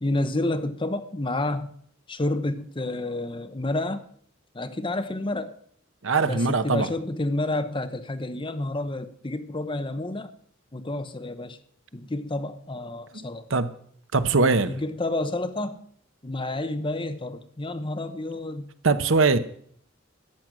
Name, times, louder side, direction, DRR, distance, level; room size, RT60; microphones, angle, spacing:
voice 1, 0.0-1.7 2.1-4.1 4.5-5.5 6.2-10.3 10.7-11.6 11.9-13.5 14.7-15.8 16.2-18.7, left 2 dB, 25° left, 0.8 m, -29 dB
voice 2, 6.0-6.9 13.1-13.7 14.1-14.8 18.8-19.4, right 4 dB, 70° right, 0.9 m, -22 dB
13.0 x 9.2 x 6.2 m
head